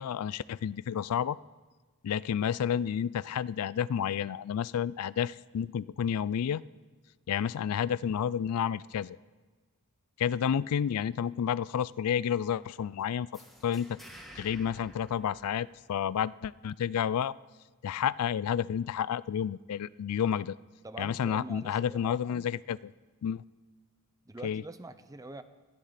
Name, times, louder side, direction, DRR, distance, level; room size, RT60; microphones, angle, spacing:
voice 1, 0.0-1.4 2.0-6.6 7.3-9.2 10.2-14.0 14.4-17.3 17.8-20.6 21.0-22.9 23.2-23.4 24.4-24.6, left 8 dB, 90° left, 20 dB, 0.3 m, -30 dB
sound 1, 13.3-16.1, equal, ahead, 2.0 m, -52 dB
voice 2, 20.8-22.2 24.3-25.4, right 2 dB, 15° right, 11 dB, 0.6 m, -44 dB
18.5 x 13.0 x 4.2 m, 1.3 s
head